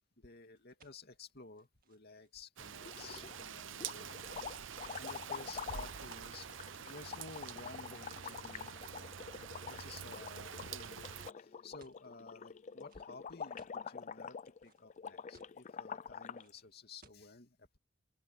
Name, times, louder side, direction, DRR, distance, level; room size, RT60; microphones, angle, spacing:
voice 1, 0.2-4.2 5.0-6.5 6.9-9.2 9.8-11.1 11.4-17.8, left 3 dB, 55° left, 2.6 m, -54 dB
sound 1, 0.6-6.7 7.4-7.6 8.1-8.8 9.2-9.7 10.1-10.5 11.1-11.3 11.5-12.1 12.9-13.8 14.3-15.0 15.3-15.8 16.4-16.5 17.0-17.2, right 5 dB, 45° right, 2.1 m, -67 dB
Rain, 2.6-11.3, right 8 dB, 70° right, 0.7 m, -47 dB
sound 2, 2.8-3.4 3.8-16.5, left 6 dB, 35° left, 0.4 m, -47 dB
open air
head